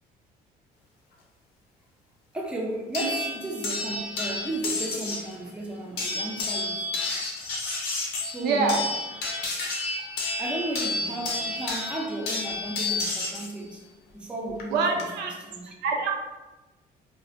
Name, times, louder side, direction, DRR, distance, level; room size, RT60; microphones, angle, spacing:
voice 1, 2.3-6.8 8.2-8.8 10.0-10.1 10.4-13.8 14.1-15.7, right 1 dB, 5° right, -1 dB, 0.4 m, -34 dB
sound 1, 2.9-5.3 6.0-13.5 14.6-15.0, left 2 dB, 75° left, 0.6 m, -31 dB
voice 2, 8.4-8.8 14.7-15.3 15.8-16.1, right 4 dB, 80° right, 2 dB, 0.4 m, -25 dB
2.4 x 2.1 x 2.4 m, 1.1 s
cardioid pair, 110°, 17 cm